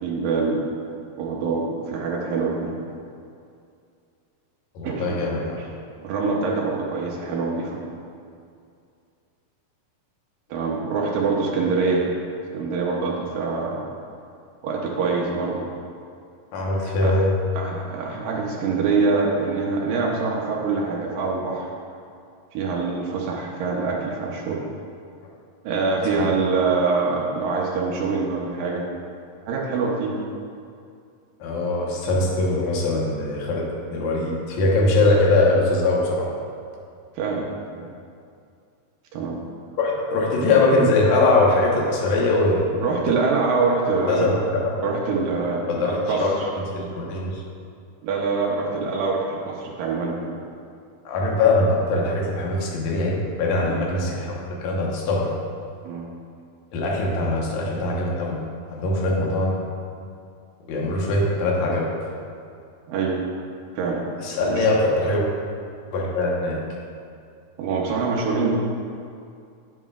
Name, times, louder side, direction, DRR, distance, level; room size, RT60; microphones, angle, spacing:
voice 1, 0.0-0.7 1.2-2.7 4.8-5.2 5.6-5.7 6.0-7.8 10.5-12.1 12.5-13.9 14.6-15.6 16.8-17.1 17.5-21.7 22.5-24.6 25.6-28.8 29.5-30.1 37.2-37.5 37.8-37.9 39.1-39.4 42.8-46.5 48.0-50.4 53.7-53.9 55.8-56.1 62.9-63.2 63.8-64.0 64.5-64.7 67.6-68.5, right 4 dB, 75° right, -2 dB, 2.2 m, -25 dB
voice 2, 4.8-5.5 16.5-17.3 26.2-26.3 31.4-36.3 39.8-42.8 44.1-44.7 45.7-46.5 46.7-47.4 51.1-55.3 56.7-58.4 58.7-59.6 60.7-61.9 64.2-65.2 65.9-66.6, left 2 dB, 65° left, -3 dB, 2.0 m, -22 dB
9.3 x 9.2 x 2.4 m, 2.4 s
omnidirectional pair, 4.6 m